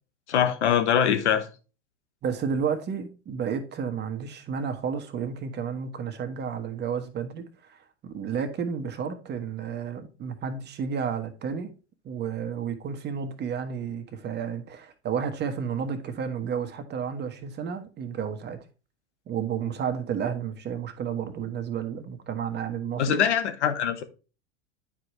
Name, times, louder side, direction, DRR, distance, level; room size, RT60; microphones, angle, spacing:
voice 1, 0.3-1.5 23.0-24.0, left 8 dB, 75° left, 1.2 m, -23 dB
voice 2, 2.2-11.7 12.0-18.6 19.3-23.2, right 7 dB, 30° right, 1.3 m, -31 dB
9.7 x 4.9 x 3.1 m
hypercardioid pair, 95°, 35 cm